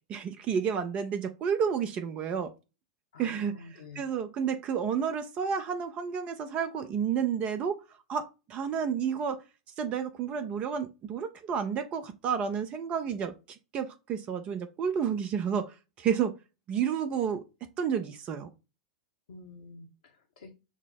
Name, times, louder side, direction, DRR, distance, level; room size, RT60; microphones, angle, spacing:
voice 1, 0.1-2.5 3.2-3.5 4.0-7.8 8.1-9.4 9.8-16.3 16.7-17.4 17.8-18.5, right 7 dB, 30° right, 0.6 m, -31 dB
voice 2, 3.1-4.1 19.3-20.5, left 3 dB, 65° left, 0.9 m, -48 dB
6.0 x 2.0 x 4.2 m
figure-of-eight pair, 90°, 4 cm